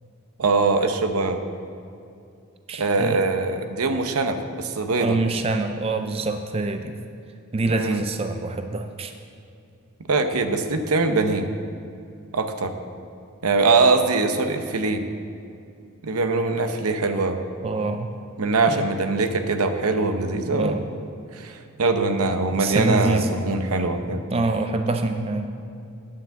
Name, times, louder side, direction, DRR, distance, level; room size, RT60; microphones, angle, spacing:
voice 1, 0.4-1.4 2.8-5.2 7.7-8.0 10.1-11.5 12.3-12.7 13.4-15.0 16.0-17.4 18.4-20.8 21.3-24.2, right 3 dB, 90° right, 7 dB, 0.8 m, -22 dB
voice 2, 2.7-3.2 5.0-7.0 7.5-9.1 17.6-18.1 18.7-18.9 20.5-20.8 22.6-23.3 24.3-25.5, right 3 dB, 25° right, 6 dB, 0.4 m, -25 dB
9.9 x 5.7 x 7.0 m, 2.5 s
head